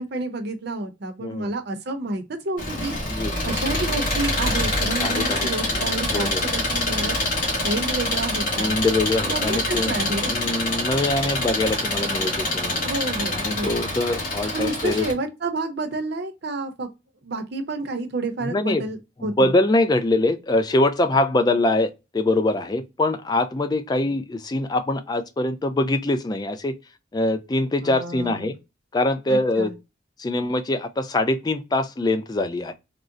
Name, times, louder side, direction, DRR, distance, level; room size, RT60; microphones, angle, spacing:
voice 1, 0.0-3.0 3.4-7.2 7.6-8.8 9.2-10.4 12.8-13.8 14.5-16.9 17.2-19.5 27.8-28.5 29.3-29.7, right 2 dB, 55° right, 0.6 m, -29 dB
voice 2, 1.2-1.5 3.1-3.3 5.0-5.8 6.1-6.4 8.6-10.0 10.2-12.8 13.3-15.1 18.4-18.8 19.2-26.7 27.1-28.5 28.9-29.7 30.2-32.7, left 2 dB, 20° left, 0.3 m, -23 dB
Engine, 2.6-15.1, left 1 dB, 45° left, 1.2 m, -25 dB
3.6 x 2.0 x 2.5 m
head